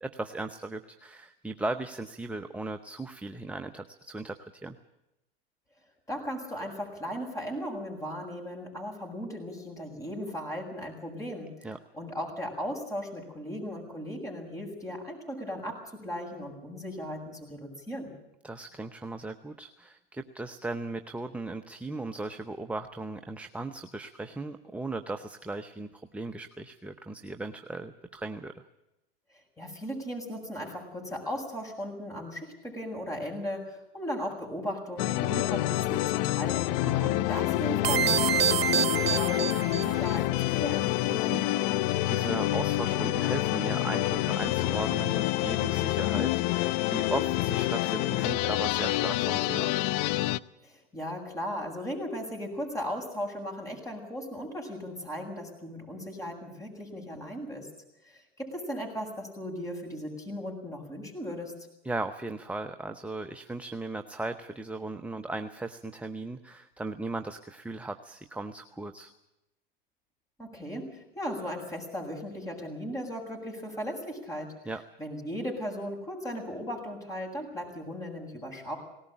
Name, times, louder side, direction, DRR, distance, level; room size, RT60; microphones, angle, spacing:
voice 1, 0.0-4.8 11.6-11.8 18.4-28.6 36.8-37.2 41.1-49.8 61.8-69.1 74.7-74.8, right 2 dB, 5° right, 8 dB, 0.8 m, -37 dB
voice 2, 6.1-11.7 11.9-18.1 29.3-36.7 37.1-40.9 50.6-57.7 58.0-61.5 70.4-74.5 75.0-78.8, equal, 10° left, -1 dB, 7.6 m, -37 dB
sound 1, 35.0-50.4, left 16 dB, 55° left, 0.7 m, -27 dB
sound 2, 37.8-40.2, right 9 dB, 80° right, 0.9 m, -27 dB
19.0 x 18.0 x 9.1 m, 0.91 s
hypercardioid pair, 100°, 29 cm